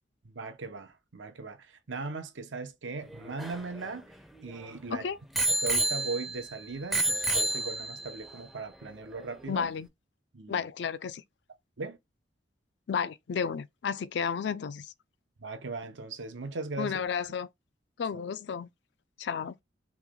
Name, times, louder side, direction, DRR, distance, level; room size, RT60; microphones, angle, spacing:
voice 1, 0.3-4.0 4.4-5.1 5.6-9.7 10.3-10.7 11.8-12.0 15.4-17.0, right 3 dB, 90° right, 0.8 m, -38 dB
Bicycle bell, 3.1-4.7 5.4-6.5 6.9-8.2 8.9-9.0, right 2 dB, ahead, 0.4 m, -30 dB
voice 2, 9.5-9.9 10.5-11.2 12.9-14.9 16.8-17.5 18.0-18.7 19.2-19.6, left 6 dB, 70° left, 0.4 m, -32 dB
3.1 x 3.0 x 3.6 m
head